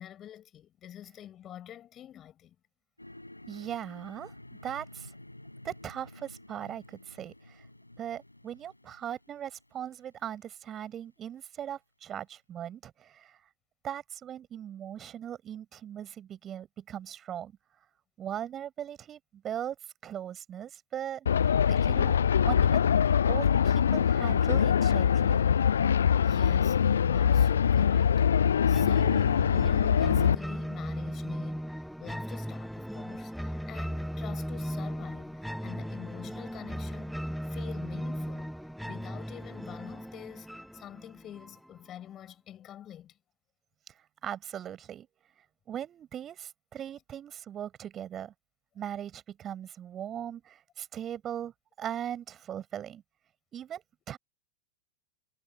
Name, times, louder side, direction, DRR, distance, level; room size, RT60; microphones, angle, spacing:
voice 1, 0.0-2.6 26.2-38.5 38.9-40.5 40.7-43.2, left 11 dB, 30° left, 7.5 m, -47 dB
sound 1, 3.0-10.3, left 1 dB, 85° left, 6.4 m, -51 dB
voice 2, 3.5-4.3 4.6-5.1 5.6-7.7 8.0-13.4 13.8-17.5 18.2-19.8 20.0-22.2 22.4-22.9 23.3-25.5 43.9-44.0 44.2-45.1 45.7-48.3 48.7-51.5 51.8-53.0 53.5-54.2, right 10 dB, 25° right, 6.7 m, -39 dB
sound 2, 21.3-30.4, left 8 dB, 65° left, 0.5 m, -23 dB
sound 3, 28.7-41.7, equal, ahead, 1.7 m, -37 dB
figure-of-eight pair, 90°, 0 cm